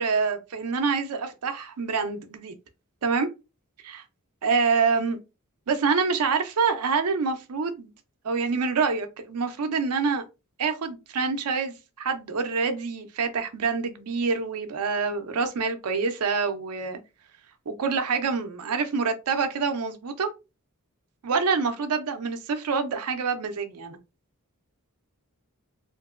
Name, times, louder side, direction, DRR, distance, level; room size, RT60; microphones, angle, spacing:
voice 1, 0.0-2.5 3.0-3.3 3.8-4.0 4.4-5.2 5.7-7.9 8.2-10.2 10.6-17.0 17.7-20.3 21.2-24.0, right 5 dB, 90° right, 0.5 m, -26 dB
2.8 x 2.5 x 2.4 m
head